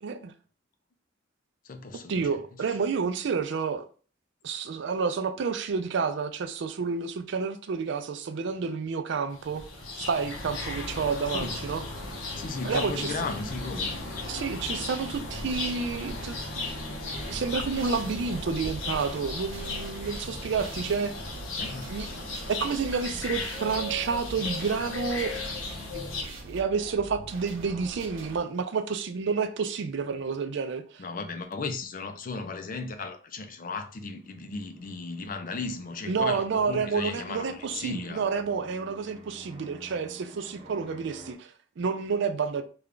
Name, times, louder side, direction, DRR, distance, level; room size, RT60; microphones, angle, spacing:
voice 1, 0.0-0.3 2.1-3.8 4.4-9.6 10.0-11.8 12.6-13.2 14.3-16.8 17.2-21.1 21.9-22.2 22.5-25.3 25.9-31.0 36.1-42.6, right 5 dB, 60° right, 0.4 m, -30 dB
voice 2, 1.7-2.3 11.3-11.6 12.4-14.0 21.6-22.3 31.0-38.2, left 4 dB, 45° left, 0.4 m, -35 dB
sound 1, 9.3-26.2, left 2 dB, 90° left, 0.8 m, -36 dB
sound 2, 17.1-28.4, right 2 dB, 90° right, 0.8 m, -43 dB
sound 3, 34.0-41.3, right 1 dB, 30° right, 0.7 m, -51 dB
3.3 x 2.3 x 3.7 m
head